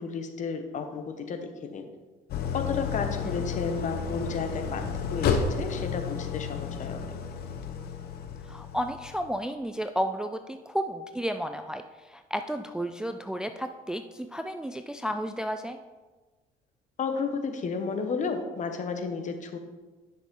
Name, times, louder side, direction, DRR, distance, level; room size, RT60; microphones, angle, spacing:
voice 1, 0.0-1.9 2.5-7.1 17.0-19.6, left 5 dB, 45° left, 7 dB, 1.1 m, -32 dB
Idling, 2.3-9.4, left 6 dB, 70° left, 0.9 m, -32 dB
voice 2, 8.5-15.8, equal, 5° right, 8 dB, 0.3 m, -32 dB
10.0 x 6.2 x 3.8 m, 1.3 s
cardioid pair, 110°, 17 cm